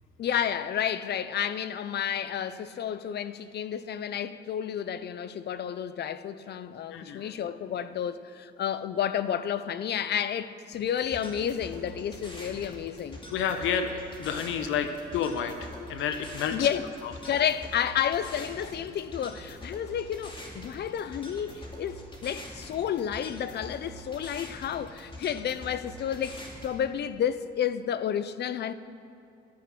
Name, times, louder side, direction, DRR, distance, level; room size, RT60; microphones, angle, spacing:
voice 1, 0.2-13.2 16.5-16.9 17.3-28.7, left 9 dB, 55° left, 0.5 m, -31 dB
voice 2, 6.9-7.3 13.3-16.7, left 7 dB, 85° left, 0.8 m, -30 dB
sound 1, 10.7-26.7, equal, 25° left, 2.4 m, -44 dB
11.0 x 9.5 x 5.9 m
cardioid pair, 90°, 20 cm